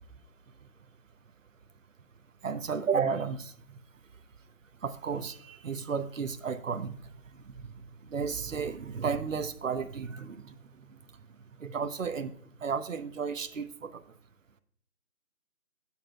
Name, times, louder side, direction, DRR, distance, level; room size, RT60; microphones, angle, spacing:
voice 1, 2.4-3.5 4.8-7.0 7.5-7.7 8.1-10.5 11.6-12.3 12.6-14.0, right 6 dB, 60° right, 9 dB, 0.7 m, -33 dB
12.0 x 7.2 x 2.2 m, 0.64 s
figure-of-eight pair, 170°, 45 cm